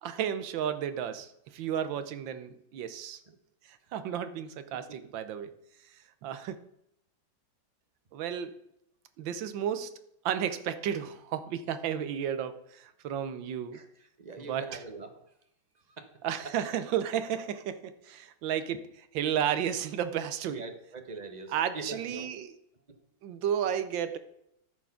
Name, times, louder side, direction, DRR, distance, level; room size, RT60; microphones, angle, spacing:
voice 1, 0.0-3.2 3.7-5.5 6.2-6.6 8.1-8.6 9.2-13.8 14.4-14.8 16.2-20.6 21.5-22.5 23.2-24.2, right 9 dB, 80° right, 11 dB, 1.5 m, -33 dB
voice 2, 13.7-15.3 15.9-16.1 18.5-18.6 20.5-22.3 22.9-23.0, right 3 dB, 35° right, 7 dB, 0.8 m, -43 dB
13.0 x 4.6 x 5.7 m, 0.79 s
omnidirectional pair, 2.0 m